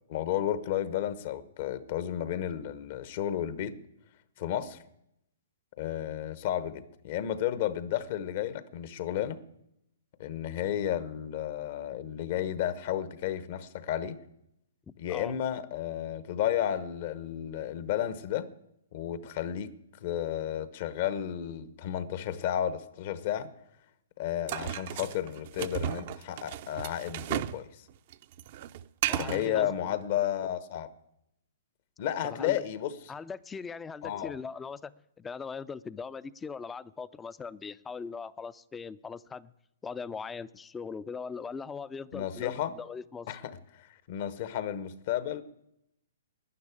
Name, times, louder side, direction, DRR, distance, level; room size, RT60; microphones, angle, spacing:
voice 1, 0.1-3.8 4.4-4.8 5.8-9.4 10.2-14.2 15.0-18.5 18.9-19.7 20.0-23.5 24.2-27.8 29.1-30.9 32.0-32.9 34.0-34.3 42.1-42.8 43.3-45.4, left 10 dB, 50° left, 1.0 m, -32 dB
voice 2, 15.1-15.4 29.1-29.9 32.2-32.6 33.1-39.5 39.8-43.4, left 5 dB, 15° left, 0.4 m, -40 dB
sound 1, 24.5-27.6 27.9-29.5, right 12 dB, 50° right, 0.6 m, -34 dB
11.0 x 10.0 x 8.4 m
hypercardioid pair, 130°, 0 cm